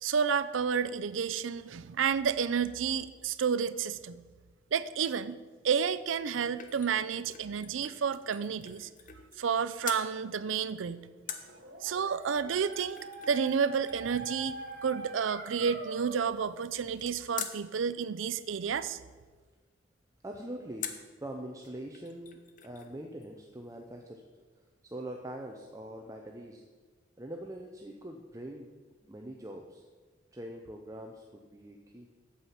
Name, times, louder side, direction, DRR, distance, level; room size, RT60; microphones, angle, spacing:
voice 1, 0.0-4.2 4.7-5.4 5.6-8.9 9.4-11.0 11.8-13.0 13.3-19.0, right 6 dB, 85° right, 16 dB, 0.4 m, -30 dB
sound 1, 5.9-9.5 9.8-10.1 11.3-17.6 20.8-21.2 21.6-21.7 21.9-22.9 23.2-23.3, left 8 dB, 40° left, 0.7 m, -46 dB
Dog, 11.4-16.4, right 3 dB, 50° right, 1.0 m, -44 dB
voice 2, 20.2-24.2 24.8-26.6 27.2-28.7 29.1-29.8 30.3-32.1, right 1 dB, 15° right, 2 dB, 0.6 m, -43 dB
8.5 x 7.6 x 5.7 m, 1.4 s
head